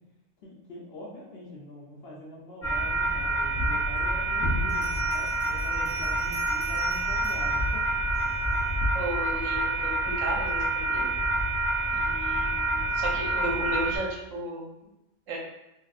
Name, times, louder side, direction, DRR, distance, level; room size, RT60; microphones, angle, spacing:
voice 1, 0.4-7.9, left 1 dB, 60° left, -3 dB, 0.8 m, -44 dB
sound 1, 2.6-14.0, right 2 dB, 30° left, 0.4 m, -27 dB
Bell, 4.7-8.6, right 3 dB, 35° right, 1.8 m, -47 dB
voice 2, 8.9-11.1 11.9-14.6 15.3-15.4, right 1 dB, 85° right, -1 dB, 1.1 m, -34 dB
3.7 x 2.3 x 2.3 m, 0.89 s
omnidirectional pair, 1.3 m